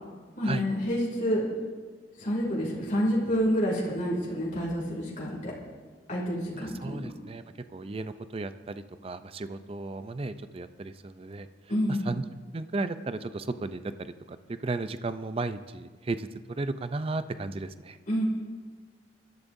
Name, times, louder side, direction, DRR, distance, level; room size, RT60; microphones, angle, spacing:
voice 1, 0.4-1.5 2.2-5.5 6.1-7.0 11.7-12.1 18.1-18.2, equal, 45° left, -4 dB, 2.7 m, -28 dB
voice 2, 6.5-7.4 7.7-11.5 11.9-12.2 12.5-18.0, right 3 dB, 30° right, 12 dB, 0.5 m, -34 dB
24.5 x 12.5 x 2.7 m, 1.5 s
head